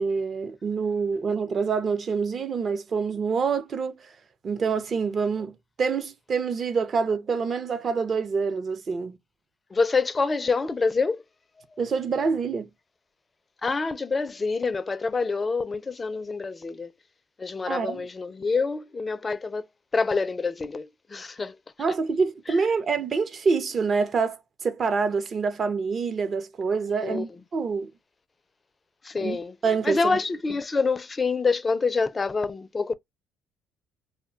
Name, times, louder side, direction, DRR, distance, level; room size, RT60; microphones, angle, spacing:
voice 1, 0.0-3.9 4.4-9.2 11.8-12.7 17.7-18.1 21.8-27.3 27.5-27.9 29.2-29.4 29.6-30.2, right 5 dB, 40° right, 0.6 m, -26 dB
voice 2, 9.7-11.2 13.6-16.9 17.4-19.6 19.9-21.6 22.5-22.6 27.0-27.2 29.0-29.6 29.8-32.9, left 4 dB, 25° left, 0.4 m, -26 dB
2.2 x 2.2 x 3.7 m
supercardioid pair, 80°, 0 cm